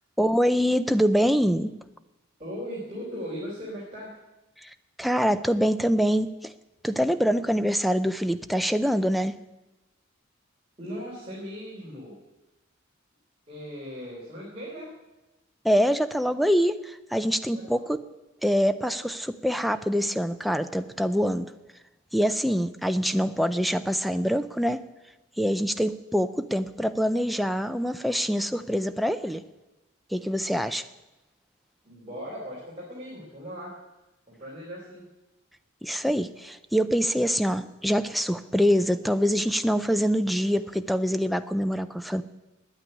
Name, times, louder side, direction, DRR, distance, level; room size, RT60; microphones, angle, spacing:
voice 1, 0.2-1.7 4.6-4.7 5.0-6.5 6.8-9.3 15.6-18.0 18.4-21.5 22.1-24.8 25.4-29.4 30.1-30.8 35.8-42.2, equal, ahead, 9 dB, 0.5 m, -25 dB
voice 2, 2.4-4.2 10.8-12.2 13.5-14.9 17.5-17.7 31.8-33.8 34.3-35.1, equal, 30° right, -7 dB, 3.7 m, -38 dB
9.6 x 9.0 x 9.8 m, 1.0 s
head